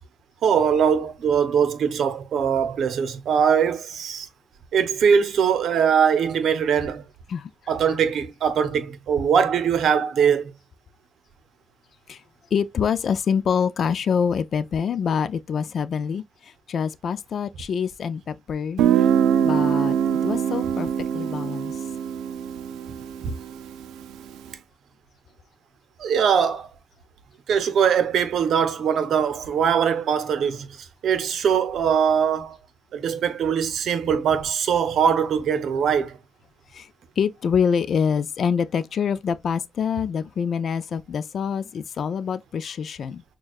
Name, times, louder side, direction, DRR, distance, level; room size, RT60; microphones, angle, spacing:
voice 1, 0.4-4.3 4.7-7.0 7.7-10.5 23.2-23.3 26.0-26.7 27.5-32.6 32.9-36.2, right 7 dB, 65° right, 0.8 m, -21 dB
voice 2, 12.5-16.2 16.7-18.8 19.4-20.0 20.2-21.7 36.7-36.9 37.2-43.2, left 7 dB, 55° left, 0.3 m, -25 dB
Guitar, 18.8-24.3, right 9 dB, 85° right, 0.4 m, -23 dB
6.3 x 2.3 x 2.4 m
cardioid pair, 90°, 0 cm